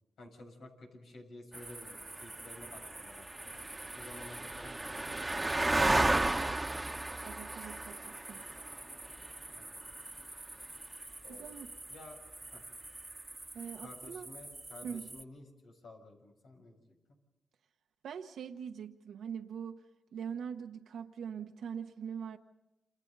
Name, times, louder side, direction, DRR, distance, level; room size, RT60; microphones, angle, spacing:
voice 1, 0.2-3.7 3.9-5.7 9.5-9.8 11.2-11.5 11.9-12.2 12.5-12.6 13.8-16.9, left 2 dB, 85° left, 1 dB, 7.3 m, -53 dB
sound 1, 1.5-15.2, right 2 dB, 15° right, 1.3 m, -36 dB
voice 2, 7.2-8.4 11.3-11.7 13.5-14.3 14.8-15.0 18.0-19.8 20.1-22.4, right 7 dB, 85° right, 5 dB, 1.1 m, -42 dB
29.5 x 27.5 x 4.1 m, 0.93 s
cardioid pair, 70°, 0 cm